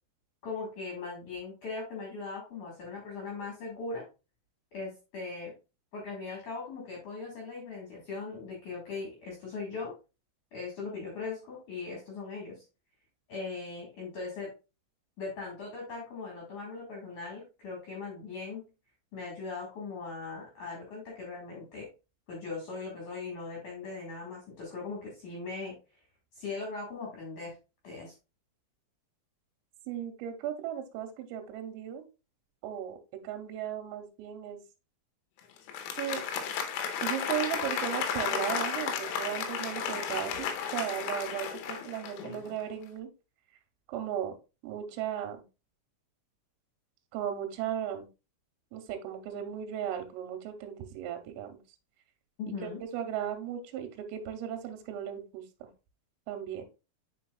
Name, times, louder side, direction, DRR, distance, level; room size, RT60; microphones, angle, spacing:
voice 1, 0.4-4.0 4.7-5.5 5.9-9.9 10.5-12.6 13.3-14.5 15.2-18.6 19.1-21.9 22.3-25.7 26.3-27.5 27.8-28.1 52.4-52.8, left 4 dB, 55° left, -2 dB, 2.3 m, -39 dB
voice 2, 29.9-32.0 32.6-33.0 33.2-34.6 36.0-36.2 37.0-43.1 43.9-44.4 44.6-45.4 47.1-48.1 48.7-51.6 52.6-55.7 56.3-56.7, right 10 dB, 85° right, 7 dB, 3.5 m, -36 dB
Applause, 35.6-42.6, left 7 dB, 85° left, 3.2 m, -33 dB
9.1 x 4.8 x 2.3 m, 0.29 s
omnidirectional pair, 5.9 m